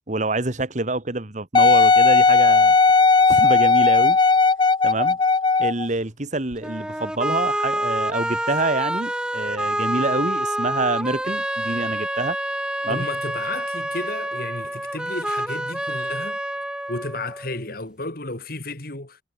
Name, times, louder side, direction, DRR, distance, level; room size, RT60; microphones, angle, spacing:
voice 1, 0.1-2.8 3.0-4.2 4.8-5.2 5.6-12.4 12.8-13.1, right 2 dB, 45° right, 1.8 m, -26 dB
Wind instrument woodwind instrument, 1.5-5.9 6.5-6.6, left 4 dB, 25° left, 0.4 m, -16 dB
sound 1, 6.6-17.6, right 1 dB, 5° right, 1.4 m, -27 dB
voice 2, 12.9-16.4 16.9-19.2, left 2 dB, 55° left, 3.7 m, -32 dB
head